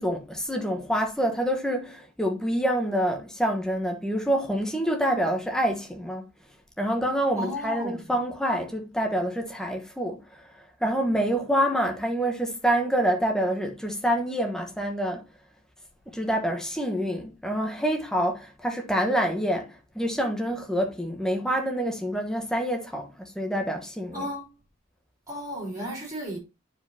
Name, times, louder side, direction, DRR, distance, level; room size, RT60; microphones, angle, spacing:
voice 1, 0.0-6.2 6.8-10.2 10.8-15.2 16.1-24.3, equal, 5° left, 1.2 m, -27 dB
voice 2, 7.3-8.0 24.1-24.5 25.3-26.4, equal, 15° right, 4.4 m, -33 dB
10.5 x 5.0 x 2.8 m
head